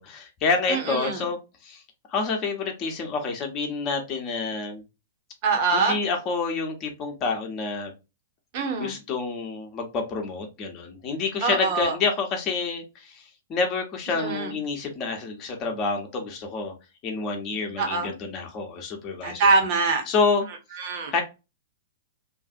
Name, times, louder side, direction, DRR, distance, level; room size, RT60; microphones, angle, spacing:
voice 1, 0.0-1.8 2.1-4.8 5.7-7.9 8.8-13.2 13.5-16.7 17.0-19.5 20.1-20.4 21.1-21.2, left 4 dB, 30° left, 0.9 m, -28 dB
voice 2, 0.7-1.2 5.4-6.0 8.5-9.0 11.4-11.9 14.2-14.5 17.8-18.1 19.2-20.0 20.8-21.1, right 4 dB, 45° right, 0.9 m, -24 dB
2.7 x 2.5 x 2.4 m
figure-of-eight pair, 105°, 0 cm